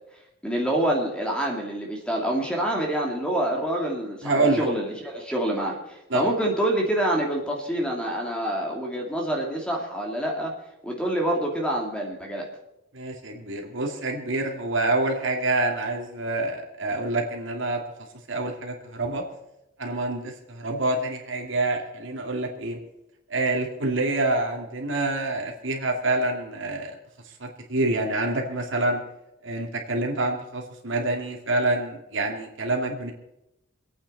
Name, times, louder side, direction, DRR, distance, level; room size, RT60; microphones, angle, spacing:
voice 1, 0.4-10.5 10.8-12.5, right 1 dB, 5° left, -1 dB, 2.3 m, -26 dB
voice 2, 4.2-4.7 6.1-6.3 12.9-17.8 18.3-19.2 19.8-22.8 23.3-27.0 27.4-29.0 29.4-33.1, right 2 dB, 60° right, 1 dB, 2.7 m, -27 dB
26.0 x 9.0 x 4.2 m, 0.88 s
head